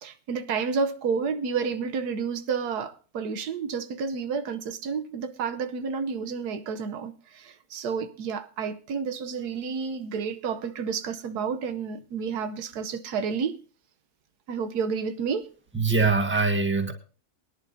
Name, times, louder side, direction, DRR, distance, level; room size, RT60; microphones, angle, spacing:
voice 1, 0.0-13.6 14.5-15.5, right 5 dB, 90° right, 1.5 m, -30 dB
voice 2, 15.7-16.9, right 4 dB, 10° right, 1.5 m, -23 dB
22.0 x 10.5 x 2.7 m
omnidirectional pair, 1.6 m